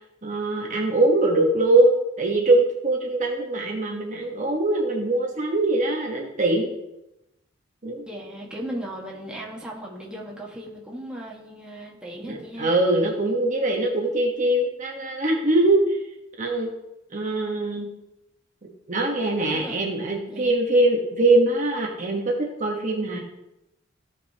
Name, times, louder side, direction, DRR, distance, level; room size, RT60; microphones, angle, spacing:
voice 1, 0.2-6.7 7.8-8.0 12.3-16.0 16.4-16.7 17.1-17.9 18.9-23.2, right 2 dB, 40° right, 0 dB, 1.3 m, -22 dB
voice 2, 8.1-12.8 19.5-19.8 20.3-20.6, right 1 dB, 5° right, -3 dB, 1.7 m, -37 dB
16.0 x 5.3 x 2.9 m, 0.89 s
head